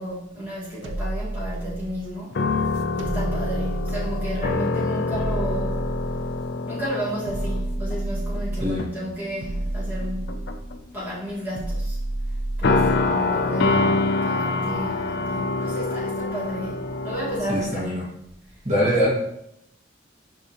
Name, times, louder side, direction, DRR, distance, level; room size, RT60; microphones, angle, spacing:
voice 1, 0.0-2.4 2.9-5.8 6.7-10.3 10.9-12.0 12.6-17.9, equal, 10° right, 1.7 m, -32 dB
sound 1, 0.8-2.2 3.0-4.6 5.1-6.5 7.3-8.9 9.4-10.8 11.5-13.2, right 1 dB, 90° right, 0.6 m, -30 dB
sound 2, 2.3-8.4 8.8-9.1 10.0-10.8 12.6-17.8, left 3 dB, 60° left, 0.5 m, -26 dB
voice 2, 17.5-18.1 18.6-19.1, equal, 35° right, 1.9 m, -23 dB
9.9 x 3.6 x 2.9 m
head